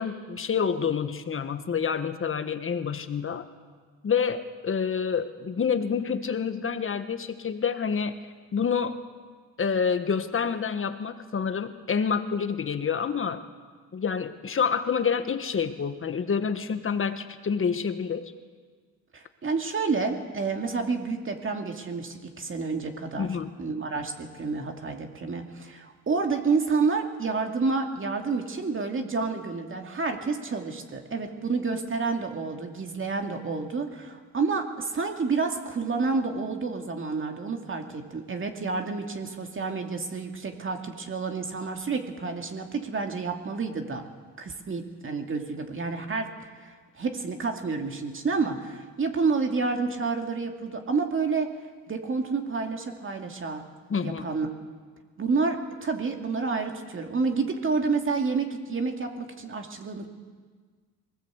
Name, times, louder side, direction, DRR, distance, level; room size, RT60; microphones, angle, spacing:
voice 1, 0.0-3.5 4.0-8.1 8.5-9.0 9.6-13.4 13.9-18.3 23.2-23.5 53.9-54.3, left 6 dB, 35° left, 9 dB, 1.6 m, -28 dB
voice 2, 19.1-23.3 23.6-44.0 44.4-51.5 51.9-53.6 54.0-54.5 55.2-60.1, right 4 dB, 35° right, 4 dB, 2.4 m, -29 dB
20.5 x 18.5 x 8.2 m, 1.5 s
cardioid pair, 105°, 37 cm